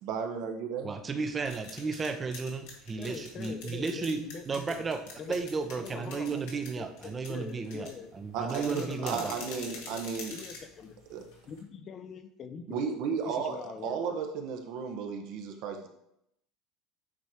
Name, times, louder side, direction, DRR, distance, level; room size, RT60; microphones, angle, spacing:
voice 1, 0.0-0.9 8.3-10.3 11.1-11.2 12.7-13.6 13.8-15.9, right 6 dB, 65° right, 4 dB, 1.0 m, -34 dB
voice 2, 0.8-4.2 4.5-5.0 5.3-9.3, right 4 dB, 25° right, 7 dB, 0.7 m, -34 dB
sound 1, 1.2-11.6, left 4 dB, 80° left, 1.8 m, -46 dB
voice 3, 3.0-4.8 5.2-5.4 5.8-6.4 6.8-8.1 8.7-10.0 10.3-11.0 11.5-12.8 13.2-14.2, left 6 dB, 40° left, 9 dB, 0.6 m, -43 dB
8.4 x 3.0 x 4.8 m, 0.78 s
supercardioid pair, 125°, 0 cm